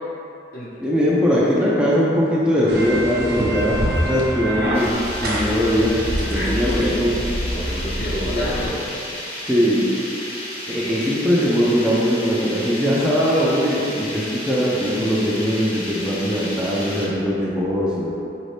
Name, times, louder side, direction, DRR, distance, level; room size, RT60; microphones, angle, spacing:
voice 1, 0.8-3.8 4.0-4.9 5.2-5.9 6.2-7.1 8.3-8.4 9.4-9.9 10.7-18.1, equal, 5° right, -7 dB, 0.4 m, -20 dB
sound 1, 2.7-8.7, equal, 60° right, 0.7 m, -26 dB
sound 2, 4.7-17.1, left 1 dB, 35° left, 0.7 m, -33 dB
voice 2, 6.3-8.8 10.6-11.1, left 1 dB, 60° left, -8 dB, 0.9 m, -30 dB
4.1 x 2.6 x 3.2 m, 2.8 s
head